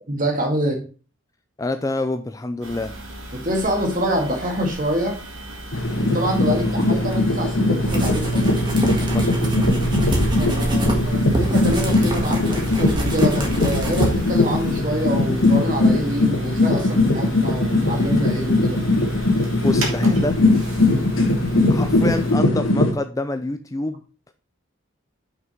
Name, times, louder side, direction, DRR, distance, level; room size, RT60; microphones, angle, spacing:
voice 1, 0.1-0.8 3.3-5.2 6.0-8.5 10.4-18.8, equal, 40° right, 2 dB, 2.0 m, -26 dB
voice 2, 1.6-2.9 6.5-7.0 9.0-9.6 19.6-20.4 21.7-24.0, left 2 dB, 15° left, 9 dB, 0.4 m, -27 dB
sound 1, 2.6-22.3, right 1 dB, 75° right, 2.2 m, -37 dB
sound 2, 5.7-22.9, left 2 dB, 70° left, 1.5 m, -20 dB
sound 3, 7.8-14.8, right 2 dB, 20° right, 1.6 m, -26 dB
6.1 x 6.0 x 4.4 m, 0.36 s
head